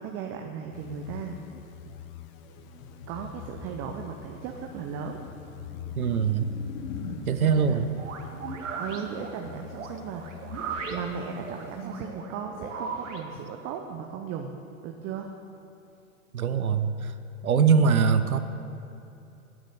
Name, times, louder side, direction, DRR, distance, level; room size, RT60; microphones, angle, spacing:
voice 1, 0.0-1.4 1.8-2.0 3.1-5.2 7.4-7.8 8.8-10.4 10.9-14.5 14.8-15.3 17.7-18.0, right 7 dB, 30° right, 3 dB, 0.7 m, -36 dB
sound 1, 0.7-12.5, left 10 dB, 25° left, 0.5 m, -46 dB
sound 2, 1.9-7.2, left 4 dB, 60° left, 1.3 m, -43 dB
voice 2, 6.0-6.5 7.3-7.9 16.3-17.1 17.4-18.4, right 6 dB, 80° right, 10 dB, 0.8 m, -22 dB
sound 3, 7.9-13.2, right 5 dB, 65° right, 1.3 m, -37 dB
9.0 x 7.0 x 7.8 m, 2.8 s
figure-of-eight pair, 100°, 42 cm